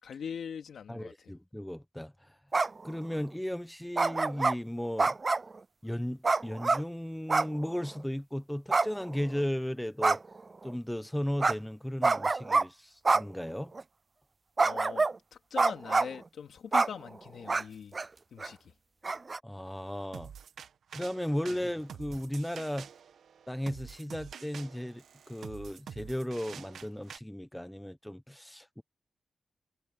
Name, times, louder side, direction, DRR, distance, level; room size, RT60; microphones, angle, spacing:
voice 1, 0.0-1.3 14.6-18.0 18.3-18.7 21.5-21.6, left 7 dB, 80° left, 3.5 m, -42 dB
voice 2, 0.9-2.3 2.8-5.2 5.8-10.2 10.6-13.7 19.4-20.3 20.9-22.9 23.5-28.8, equal, 5° left, 1.0 m, -35 dB
sound 1, 2.5-2.9 4.0-4.5 5.0-5.5 6.2-6.8 7.3-7.6 7.8-7.9 8.7-9.4 10.0-10.4 11.4-11.5 12.0-12.6 13.0-13.2 13.8-13.9 14.6-15.2 15.6-16.2 16.7-16.9 17.5-17.6 17.9-18.1 18.4-18.5 19.0-19.4, right 3 dB, 35° right, 0.3 m, -26 dB
sound 2, 20.1-27.2, right 8 dB, 85° right, 1.6 m, -48 dB
cardioid pair, 75°, 0 cm